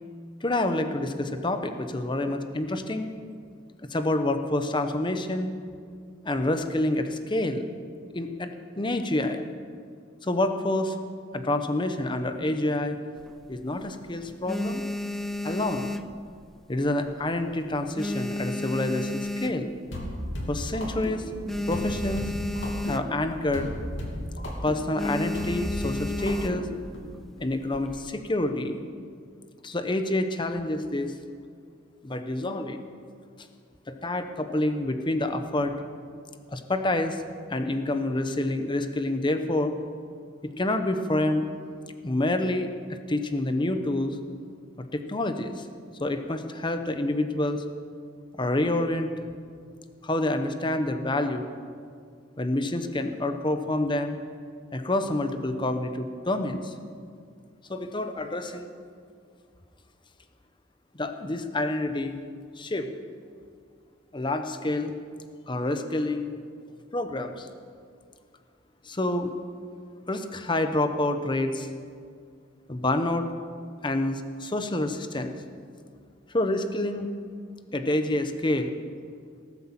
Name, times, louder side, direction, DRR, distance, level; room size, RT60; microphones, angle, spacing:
voice 1, 0.4-3.1 3.9-5.5 6.2-7.6 8.1-8.5 8.8-9.4 10.2-11.0 11.3-13.0 13.5-14.8 15.4-15.9 16.7-19.7 20.5-21.2 21.7-22.3 22.9-23.7 24.6-26.7 27.4-28.8 29.6-31.1 32.0-32.8 33.9-35.7 36.5-37.2 37.5-39.7 40.4-41.5 42.0-42.7 43.1-44.2 44.9-45.6 46.0-47.6 48.3-49.1 50.0-51.5 52.4-54.2 54.7-56.7 57.7-58.7 60.9-62.2 62.6-62.9 64.1-64.9 65.5-66.3 66.9-67.5 68.8-69.3 70.1-71.7 72.7-73.3 73.8-75.3 76.3-77.1 77.7-78.7, left 1 dB, 25° left, 7 dB, 0.9 m, -27 dB
sound 1, 13.2-13.9 14.3-16.8 17.1-17.4 17.7-20.0 20.4-20.5 20.7-20.8 21.2-23.4 23.7-23.9 24.3-24.5 25.0-26.8 27.5-28.1, left 1 dB, ahead, 0.4 m, -32 dB
sound 2, 19.9-27.1, equal, 80° left, 2.7 m, -35 dB
18.0 x 8.2 x 7.3 m, 2.1 s
head